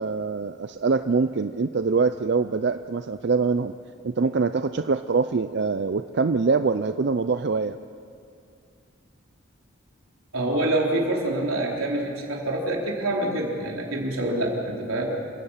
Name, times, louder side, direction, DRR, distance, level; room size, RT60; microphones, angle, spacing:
voice 1, 0.0-3.7 4.0-7.8, right 4 dB, 55° right, 10 dB, 0.4 m, -24 dB
voice 2, 10.3-15.2, right 1 dB, 90° right, -1 dB, 3.9 m, -26 dB
28.5 x 16.5 x 5.8 m, 2.3 s
head